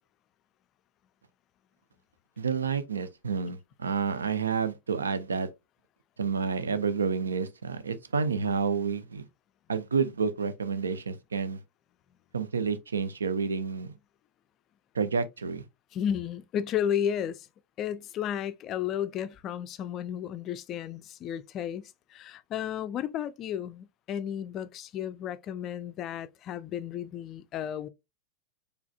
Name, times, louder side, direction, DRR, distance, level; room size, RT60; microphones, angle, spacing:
voice 1, 2.4-5.5 6.2-9.3 9.7-11.6 12.3-13.9 14.9-15.6, right 5 dB, 70° right, 0.5 m, -29 dB
voice 2, 15.9-17.5 17.8-27.9, left 9 dB, 35° left, 0.3 m, -33 dB
4.7 x 3.3 x 2.3 m
figure-of-eight pair, 90°, 0 cm